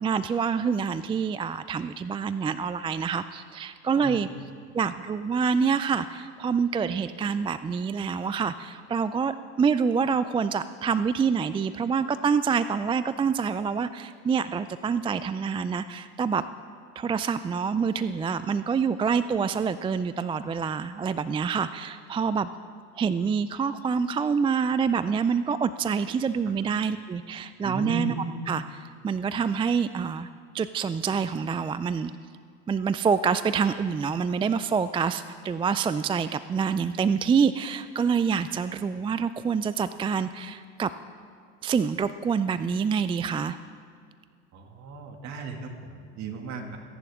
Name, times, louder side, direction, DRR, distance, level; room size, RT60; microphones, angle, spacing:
voice 1, 0.0-4.3 4.7-16.4 17.0-22.5 23.0-28.1 28.5-30.3 30.5-32.1 32.7-40.9 41.6-43.6, right 6 dB, 15° right, 13 dB, 0.3 m, -26 dB
voice 2, 27.6-28.1 44.5-45.7 46.2-46.8, right 4 dB, 50° right, 3 dB, 2.3 m, -34 dB
26.0 x 11.0 x 3.6 m, 2.2 s
hypercardioid pair, 80°, 35 cm